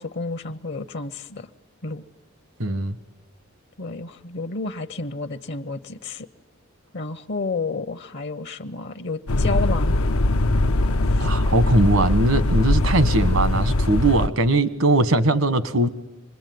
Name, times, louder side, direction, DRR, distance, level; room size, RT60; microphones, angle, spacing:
voice 1, 0.0-1.5 1.8-2.0 3.8-6.3 6.9-10.0 11.1-11.3, left 3 dB, 55° left, 12 dB, 0.8 m, -31 dB
voice 2, 2.6-3.0 11.2-15.9, right 2 dB, 75° right, 13 dB, 1.4 m, -20 dB
sound 1, 9.3-14.3, left 2 dB, 90° left, 0.8 m, -21 dB
26.5 x 21.0 x 9.3 m, 1.0 s
head